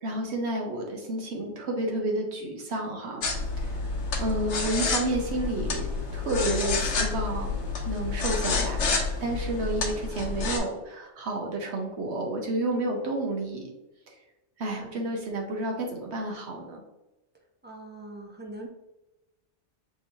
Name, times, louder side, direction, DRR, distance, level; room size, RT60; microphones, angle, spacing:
voice 1, 0.0-3.2 4.2-5.9 6.1-7.5 7.9-13.7 14.6-16.8, right 1 dB, 70° right, 1 dB, 1.0 m, -30 dB
sound 1, 3.2-10.6, left 4 dB, 75° left, 1.1 m, -29 dB
voice 2, 4.1-4.6 14.8-15.1 17.6-18.7, right 2 dB, 15° right, 1 dB, 0.4 m, -44 dB
6.3 x 3.0 x 2.6 m, 1.0 s
omnidirectional pair, 1.2 m